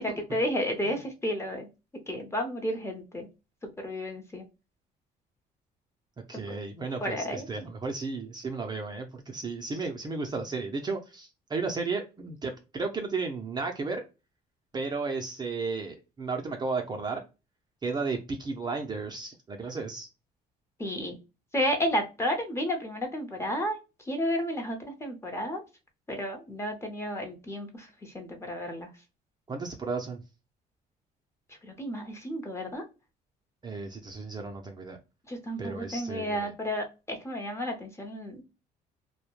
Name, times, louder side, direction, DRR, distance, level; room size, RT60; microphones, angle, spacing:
voice 1, 0.0-1.7 2.1-3.3 3.6-4.4 6.5-6.6 7.0-7.5 20.8-21.2 21.5-25.6 26.1-28.9 31.6-32.8 35.3-38.4, equal, 15° left, 0.7 m, -32 dB
voice 2, 6.3-14.0 14.7-17.2 17.8-20.1 29.5-30.2 33.6-35.0 35.6-36.5, right 4 dB, 25° right, 0.5 m, -34 dB
2.2 x 2.1 x 2.9 m
cardioid pair, 110°, 17 cm